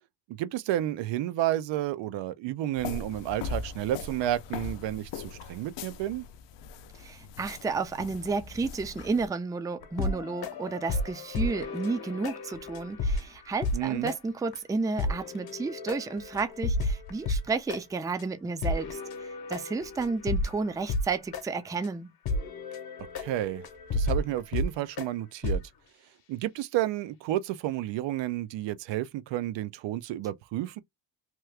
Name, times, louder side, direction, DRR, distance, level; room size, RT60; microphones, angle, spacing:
voice 1, 0.3-6.3 13.7-14.1 23.2-23.6 23.9-25.6 26.3-30.8, right 13 dB, 90° right, 0.5 m, -31 dB
sound 1, 2.8-9.3, left 4 dB, 80° left, 0.6 m, -40 dB
voice 2, 7.0-19.0 19.5-22.1, right 4 dB, 10° right, 0.3 m, -32 dB
sound 2, 9.8-13.8 14.1-14.2 14.5-14.6 15.0-17.8 18.2-18.3 18.6-21.1 21.3-21.4 21.8-21.9 22.3-25.1 25.4-25.6, left 2 dB, 60° left, 0.9 m, -32 dB
3.0 x 2.3 x 3.1 m
cardioid pair, 120°, 43 cm